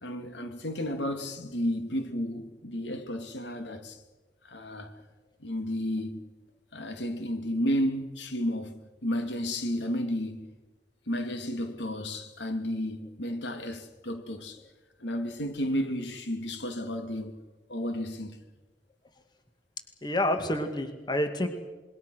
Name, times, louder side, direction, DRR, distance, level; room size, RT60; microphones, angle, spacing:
voice 1, 0.0-4.0 4.4-4.9 5.4-6.2 6.7-10.5 11.1-14.6 15.0-17.3 17.7-18.4, equal, 85° left, 2.6 m, -32 dB
voice 2, 20.0-21.5, left 1 dB, 25° left, 2.3 m, -28 dB
26.5 x 23.0 x 6.4 m
head